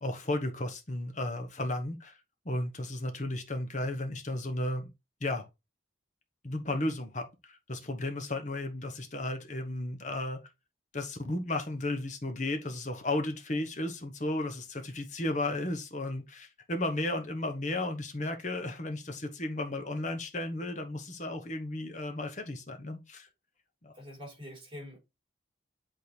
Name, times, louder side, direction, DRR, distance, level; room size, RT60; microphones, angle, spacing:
voice 1, 0.0-2.2 2.4-4.9 5.2-5.5 6.4-10.4 10.9-23.3 23.8-23.9, left 2 dB, 40° left, 1.1 m, -34 dB
voice 2, 23.9-25.0, left 1 dB, 30° right, 4.0 m, -45 dB
8.3 x 3.8 x 3.3 m
head